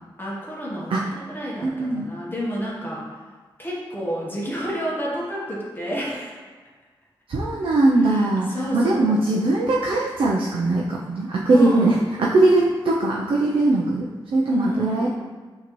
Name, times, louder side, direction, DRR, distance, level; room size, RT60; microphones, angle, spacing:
voice 1, 0.2-3.1 3.6-6.4 8.0-9.2 11.5-11.9 14.5-15.1, equal, 25° left, -5 dB, 1.1 m, -29 dB
voice 2, 1.6-2.1 7.3-15.1, right 2 dB, 90° right, -3 dB, 0.5 m, -20 dB
5.8 x 2.8 x 3.0 m, 1.4 s
wide cardioid pair, 75°, 9 cm